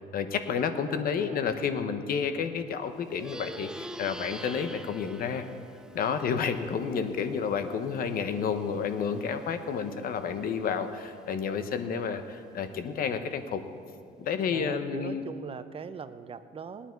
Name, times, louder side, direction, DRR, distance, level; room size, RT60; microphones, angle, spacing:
voice 1, 0.1-5.4 5.9-13.6 14.2-15.2, left 6 dB, 60° left, 9 dB, 1.1 m, -30 dB
voice 2, 0.8-1.5 6.2-6.5 14.5-16.9, right 6 dB, 35° right, 11 dB, 0.7 m, -41 dB
Plucked string instrument, 3.0-12.8, right 1 dB, 5° right, 0.4 m, -46 dB
19.0 x 10.0 x 4.7 m, 2.4 s
cardioid pair, 110°, 17 cm